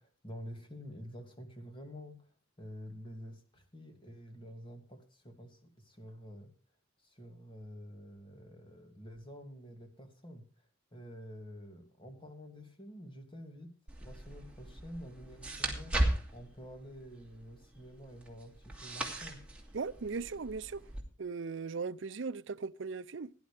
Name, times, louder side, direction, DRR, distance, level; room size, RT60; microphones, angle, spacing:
voice 1, 0.0-6.5 7.0-10.5 10.9-13.8 14.0-16.0 16.3-19.4, equal, 25° left, 2.6 m, -49 dB
sound 1, 13.9-21.0, right 1 dB, 5° right, 2.8 m, -38 dB
voice 2, 19.7-20.9 21.2-23.3, right 4 dB, 65° right, 0.6 m, -38 dB
17.0 x 11.0 x 3.4 m
head